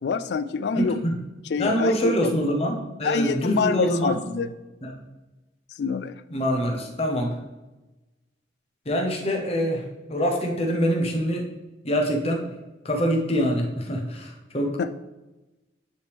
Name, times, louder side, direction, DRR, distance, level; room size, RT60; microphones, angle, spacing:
voice 1, 0.0-1.0 1.5-2.1 3.0-4.5 5.8-6.1 14.8-14.9, left 5 dB, 65° left, 14 dB, 0.3 m, -26 dB
voice 2, 0.7-1.1 1.6-4.2 4.8-5.0 6.3-7.4 8.9-11.5 11.8-12.4 12.8-14.8, equal, 35° left, 2 dB, 0.9 m, -25 dB
9.4 x 3.3 x 3.5 m, 1.1 s
head